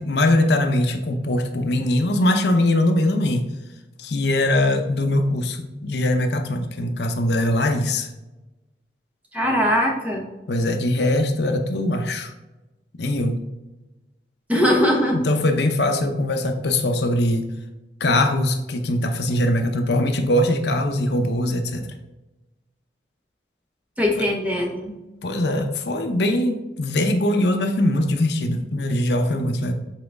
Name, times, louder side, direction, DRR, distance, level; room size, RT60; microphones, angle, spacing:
voice 1, 0.0-3.5 4.0-8.1 10.5-12.3 13.0-13.4 15.1-17.5 18.0-21.8 24.2-24.3 25.2-29.7, left 1 dB, 70° left, 5 dB, 0.7 m, -21 dB
voice 2, 9.3-10.2 14.5-15.2 24.0-24.9, equal, 10° right, 0 dB, 1.0 m, -20 dB
7.5 x 4.0 x 3.5 m, 1.0 s
head